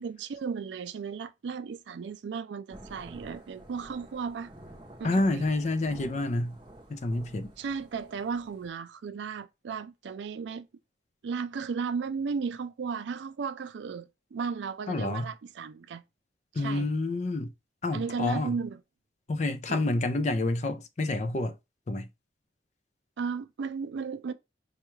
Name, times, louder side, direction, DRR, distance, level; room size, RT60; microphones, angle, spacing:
voice 1, 0.0-4.5 5.0-5.4 7.6-10.7 11.2-16.0 16.6-16.9 17.9-18.8 19.7-19.8 23.2-24.3, right 5 dB, 85° right, 0.4 m, -35 dB
Thunder / Rain, 2.7-8.7, right 1 dB, 25° right, 0.7 m, -50 dB
voice 2, 5.0-6.6 6.9-7.5 14.9-15.3 16.5-17.5 17.8-18.6 19.3-21.5 21.9-22.1, left 2 dB, 40° left, 0.4 m, -28 dB
4.5 x 2.3 x 3.1 m
head